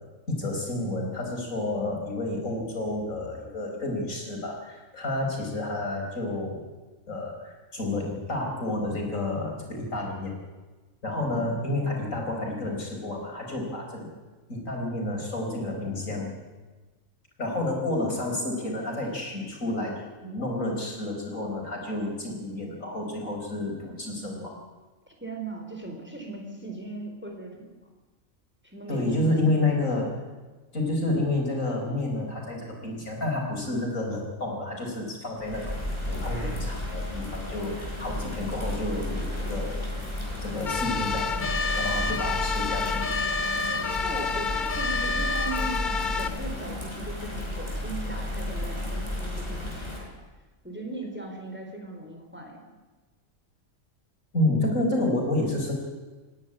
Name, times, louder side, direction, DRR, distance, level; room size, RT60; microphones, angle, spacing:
voice 1, 0.3-6.6 7.1-10.3 11.0-14.1 14.5-16.4 17.4-19.9 20.2-24.6 28.9-30.2 30.7-39.8 40.4-43.0 54.3-55.7, left 2 dB, 75° left, 0 dB, 5.0 m, -30 dB
voice 2, 25.1-27.7 28.6-29.8 43.7-50.1 50.6-52.6, right 2 dB, 10° right, 1 dB, 4.1 m, -39 dB
Bird vocalization bird call bird song / Rain, 35.3-50.0, left 1 dB, 20° left, 5.5 m, -33 dB
sound 1, 40.7-46.3, left 4 dB, 40° left, 1.1 m, -28 dB
28.0 x 10.5 x 9.8 m, 1.3 s
omnidirectional pair, 1.4 m